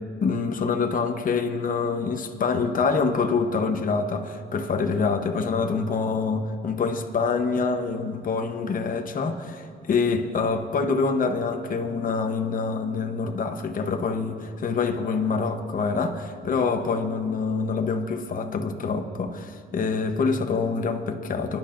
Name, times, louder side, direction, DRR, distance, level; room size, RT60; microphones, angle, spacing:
voice 1, 0.2-21.6, left 4 dB, 45° left, 0.9 m, -26 dB
25.0 x 10.5 x 2.5 m
cardioid pair, 90°, 20 cm